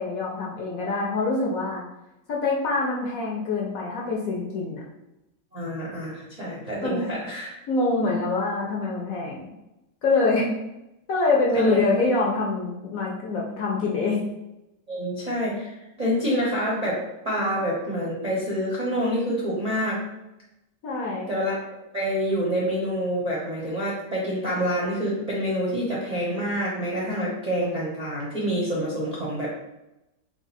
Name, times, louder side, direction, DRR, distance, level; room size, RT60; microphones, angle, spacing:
voice 1, 0.0-1.8 2.3-4.8 6.8-7.1 7.7-9.5 10.0-10.5 11.1-14.2 20.8-21.3, left 3 dB, 65° left, -2 dB, 0.9 m, -25 dB
voice 2, 5.5-7.5 11.6-11.8 14.9-17.0 17.2-20.0 21.3-29.6, equal, 45° right, -7 dB, 0.5 m, -27 dB
3.6 x 2.4 x 4.1 m, 0.93 s
omnidirectional pair, 1.9 m